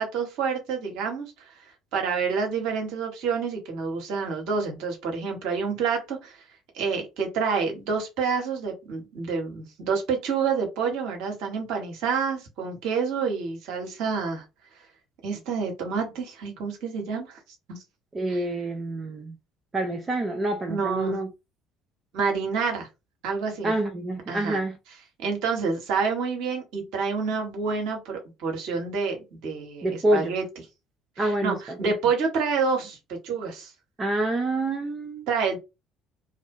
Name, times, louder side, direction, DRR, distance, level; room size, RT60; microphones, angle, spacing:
voice 1, 0.0-1.3 1.9-6.4 6.7-14.4 15.2-17.4 17.7-17.8 18.3-18.4 20.7-21.2 22.1-22.9 23.2-23.7 24.3-24.6 25.2-30.4 31.2-33.7 35.3-35.6, right 5 dB, 60° right, 0.8 m, -28 dB
voice 2, 18.1-19.4 19.7-21.3 23.6-24.8 29.8-30.3 31.2-31.9 34.0-35.3, right 1 dB, 25° right, 0.4 m, -27 dB
2.5 x 2.1 x 2.6 m
figure-of-eight pair, 55°, 0 cm